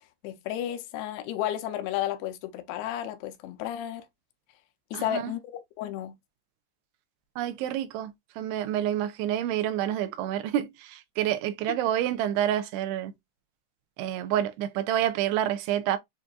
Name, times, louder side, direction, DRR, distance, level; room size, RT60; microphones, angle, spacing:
voice 1, 0.2-4.1 4.9-6.1 11.7-11.8, left 12 dB, 80° left, 2.6 m, -32 dB
voice 2, 4.9-5.4 7.4-13.1 14.0-16.0, right 11 dB, 85° right, 2.6 m, -28 dB
7.2 x 2.5 x 2.3 m
omnidirectional pair, 4.8 m